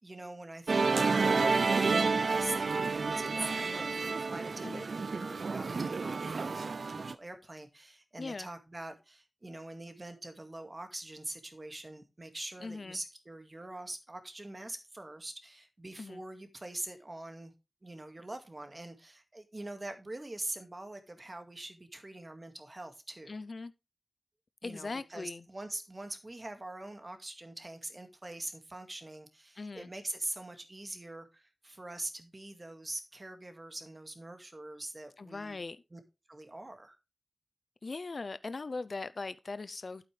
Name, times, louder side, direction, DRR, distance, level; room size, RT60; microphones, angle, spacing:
voice 1, 0.0-17.5 17.8-23.4 24.6-35.6 35.9-36.0 36.3-37.0, right 2 dB, 35° right, 2.0 m, -44 dB
Musical instrument, 0.7-7.1, right 4 dB, 85° right, 0.4 m, -30 dB
voice 2, 8.2-8.5 12.6-13.0 16.0-16.2 23.3-23.7 24.6-25.4 29.6-29.9 35.2-35.8 37.8-40.1, left 3 dB, 65° left, 0.6 m, -40 dB
11.5 x 8.8 x 3.3 m
wide cardioid pair, 85°, 0 cm